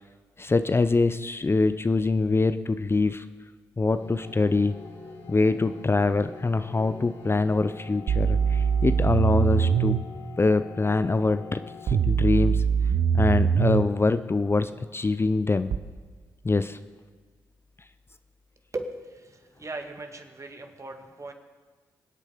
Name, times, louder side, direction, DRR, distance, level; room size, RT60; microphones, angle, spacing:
voice 1, 0.4-3.2 3.8-4.7 5.3-10.0 10.4-12.6 13.1-15.7 16.4-16.8, left 3 dB, 30° left, 12 dB, 0.6 m, -24 dB
sound 1, 3.9-11.9, left 5 dB, 75° left, 2.7 m, -45 dB
sound 2, 8.1-10.0 11.9-13.9 15.7-15.8, right 7 dB, 70° right, 0.7 m, -22 dB
voice 2, 18.7-21.3, right 2 dB, 35° right, 5 dB, 2.0 m, -38 dB
24.5 x 8.4 x 5.1 m, 1.4 s
supercardioid pair, 45°, 9 cm